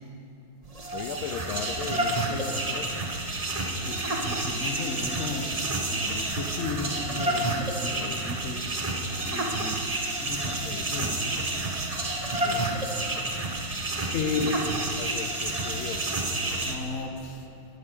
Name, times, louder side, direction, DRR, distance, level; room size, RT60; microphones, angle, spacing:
sound 1, 0.6-16.7, right 2 dB, 35° right, 0.5 m, -29 dB
voice 1, 0.9-2.9 7.9-8.2 10.6-10.9 12.4-12.7 14.4-16.0, left 8 dB, 75° left, 8 dB, 1.4 m, -37 dB
voice 2, 3.5-9.9 10.2-11.3 13.7-13.8 14.1-14.6 16.6-17.5, left 4 dB, 45° left, 5 dB, 1.1 m, -35 dB
14.5 x 13.0 x 5.1 m, 2.9 s
omnidirectional pair, 2.4 m